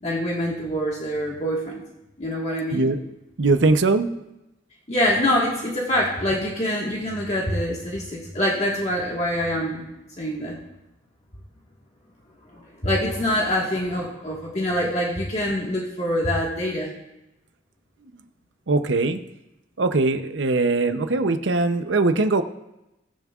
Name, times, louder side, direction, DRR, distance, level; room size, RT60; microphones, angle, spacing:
voice 1, 0.0-1.8 2.2-2.9 4.9-9.8 10.2-10.6 12.5-16.9, equal, 35° left, -3 dB, 1.6 m, -25 dB
voice 2, 2.7-3.0 3.4-4.1 18.7-19.2 19.8-22.4, right 3 dB, 85° right, 9 dB, 0.7 m, -21 dB
21.5 x 7.3 x 2.4 m, 0.91 s
head